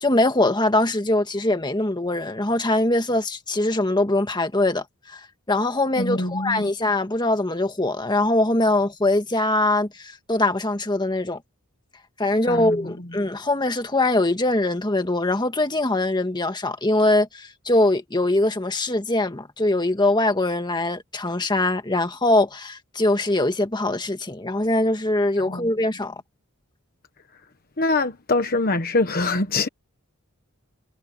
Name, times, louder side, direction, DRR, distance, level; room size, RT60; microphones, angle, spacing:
voice 1, 0.0-5.2 5.5-11.4 12.2-26.2, left 2 dB, 20° left, 1.8 m, -22 dB
voice 2, 6.0-6.7 12.5-12.8 25.4-25.7 27.8-29.7, left 3 dB, 45° left, 1.2 m, -24 dB
head